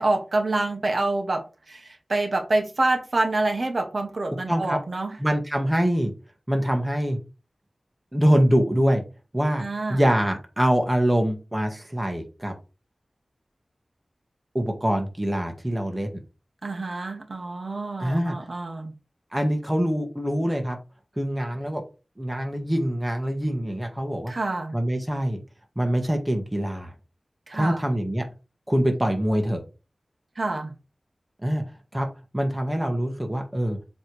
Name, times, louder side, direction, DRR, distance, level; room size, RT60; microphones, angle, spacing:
voice 1, 0.0-5.2 9.6-10.0 16.6-18.9 24.3-24.7 27.5-27.8 30.3-30.7, right 2 dB, 55° right, 4 dB, 1.4 m, -27 dB
voice 2, 4.5-4.8 5.2-6.1 6.5-7.2 8.1-9.0 9.3-9.6 9.9-12.5 14.5-16.2 18.0-18.4 19.3-20.8 21.2-21.8 22.2-24.3 24.7-25.4 25.8-26.9 27.5-28.3 28.7-29.6 31.4-31.6 31.9-32.1 32.3-33.8, equal, 10° right, 3 dB, 1.7 m, -24 dB
7.8 x 3.5 x 4.8 m, 0.30 s
wide cardioid pair, 80°, 0 cm